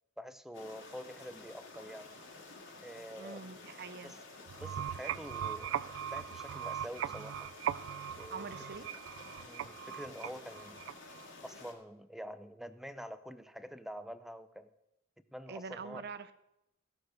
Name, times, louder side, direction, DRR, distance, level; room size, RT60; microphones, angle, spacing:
voice 1, 0.2-2.2 2.8-3.4 4.0-4.2 4.6-7.5 8.2-8.5 9.5-10.8 11.4-14.7 15.3-16.0, equal, ahead, 12 dB, 0.5 m, -47 dB
sound 1, 0.5-11.7, left 3 dB, 70° left, 2.2 m, -52 dB
voice 2, 3.2-4.2 8.3-8.9 15.5-16.3, right 5 dB, 55° right, 12 dB, 0.7 m, -44 dB
sound 2, 4.5-11.3, right 9 dB, 70° right, 0.3 m, -39 dB
16.0 x 6.4 x 6.4 m, 0.86 s
head